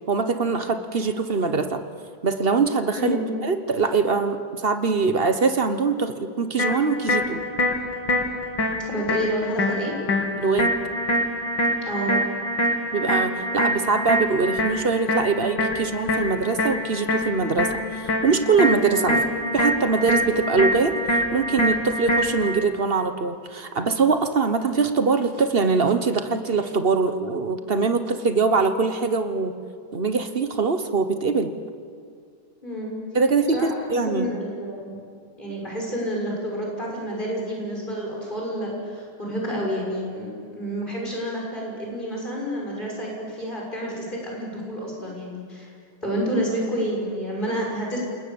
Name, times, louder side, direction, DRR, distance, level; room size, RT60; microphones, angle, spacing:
voice 1, 0.1-1.8 2.2-3.2 3.4-7.4 10.4-10.7 12.9-19.2 19.5-29.5 29.9-31.5 33.1-34.3, right 4 dB, 35° right, 9 dB, 1.0 m, -23 dB
voice 2, 3.0-3.3 8.9-9.9 11.9-12.2 19.1-19.2 32.6-32.9 33.5-35.0 35.4-45.7 46.0-48.0, equal, 20° left, -3 dB, 6.7 m, -29 dB
sound 1, 6.6-22.6, equal, 60° left, 3.1 m, -25 dB
29.0 x 20.0 x 7.2 m, 2.2 s
omnidirectional pair, 2.2 m